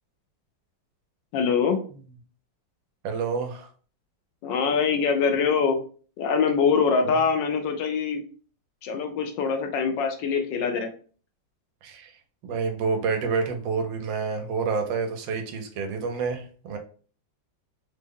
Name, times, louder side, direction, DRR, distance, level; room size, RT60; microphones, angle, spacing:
voice 1, 1.3-1.8 4.4-5.8 6.2-8.2 8.8-10.9, left 5 dB, 75° left, 5 dB, 1.2 m, -23 dB
voice 2, 3.0-3.7 7.0-7.2 11.8-12.1 12.4-16.8, right 5 dB, 85° right, 5 dB, 1.3 m, -28 dB
3.5 x 2.0 x 3.6 m, 0.41 s
omnidirectional pair, 2.0 m